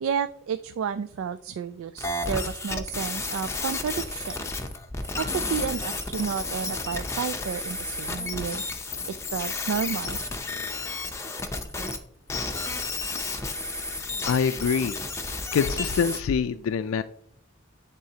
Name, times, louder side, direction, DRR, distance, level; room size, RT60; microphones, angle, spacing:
voice 1, 0.0-4.3 5.2-8.6 9.1-10.2, right 7 dB, 80° right, 11 dB, 0.3 m, -31 dB
sound 1, 2.0-12.0 12.3-16.2, left 3 dB, 15° left, 0.6 m, -32 dB
voice 2, 14.2-15.0 15.5-17.0, left 6 dB, 85° left, 10 dB, 0.3 m, -25 dB
11.0 x 3.8 x 2.8 m, 0.68 s
head